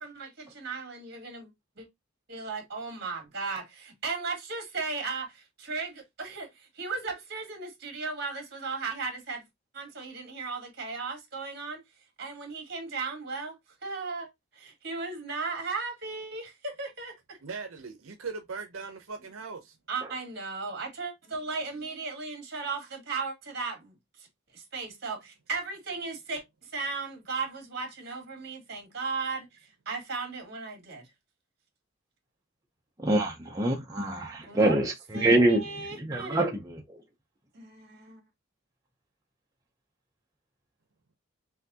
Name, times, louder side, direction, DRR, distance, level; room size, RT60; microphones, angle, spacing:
voice 1, 0.0-1.5 1.8-1.9 2.3-9.4 9.7-11.8 12.2-13.6 13.8-17.1 19.9-24.3 24.5-31.1 34.5-34.8 35.1-36.4 37.5-38.2, right 4 dB, 50° right, 2.0 m, -36 dB
voice 2, 17.3-19.8, right 4 dB, 80° right, 0.7 m, -39 dB
voice 3, 33.0-35.6 36.0-37.0, right 1 dB, 15° right, 0.6 m, -25 dB
5.7 x 2.7 x 2.7 m
head